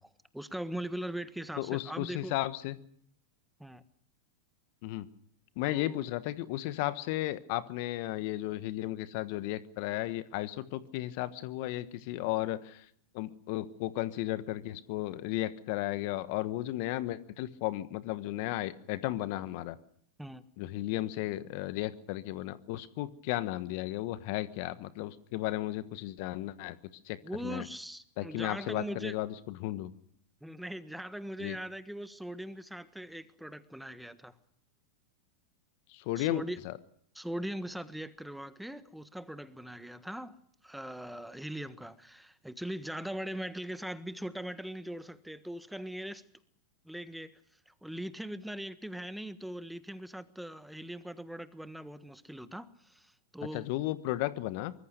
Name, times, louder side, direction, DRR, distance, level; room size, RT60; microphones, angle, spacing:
voice 1, 0.0-2.3 3.6-3.8 5.7-6.1 20.2-20.4 27.2-29.1 30.4-34.3 36.2-36.6 37.1-40.4 40.6-46.2 46.8-47.4 47.7-53.7, right 1 dB, ahead, 12 dB, 1.5 m, -40 dB
voice 2, 1.6-2.8 4.8-5.1 5.6-12.9 13.1-19.8 20.6-26.8 27.0-27.2 27.4-27.7 28.2-29.9 31.4-31.6 35.9-36.8 53.5-54.7, left 16 dB, 55° left, 14 dB, 1.2 m, -34 dB
24.0 x 21.0 x 6.7 m, 0.65 s
hypercardioid pair, 95°, 0 cm